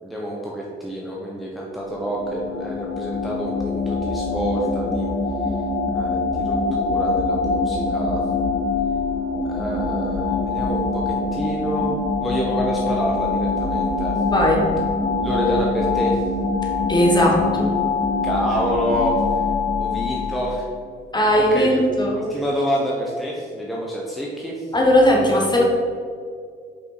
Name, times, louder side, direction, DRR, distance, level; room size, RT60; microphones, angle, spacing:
voice 1, 0.0-5.1 5.9-8.2 9.4-14.2 15.2-16.2 18.2-19.2 19.8-20.7 21.3-21.8 22.1-24.7, equal, ahead, -4 dB, 1.0 m, -27 dB
sound 1, 1.8-20.8, left 3 dB, 45° left, 0.9 m, -24 dB
voice 2, 14.2-14.6 16.9-17.7 21.1-22.3 24.7-25.6, left 1 dB, 20° left, -1 dB, 1.5 m, -18 dB
5.4 x 5.3 x 4.9 m, 2.1 s
cardioid pair, 90°, 20 cm